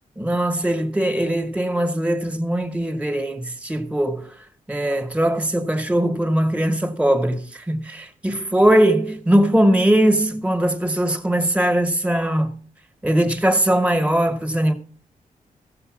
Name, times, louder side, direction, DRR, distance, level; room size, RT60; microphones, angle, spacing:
voice 1, 0.2-4.3 4.7-12.5 13.0-14.7, right 1 dB, 10° right, 1.2 m, -20 dB
15.0 x 6.7 x 6.2 m
wide cardioid pair, 155°, 15 cm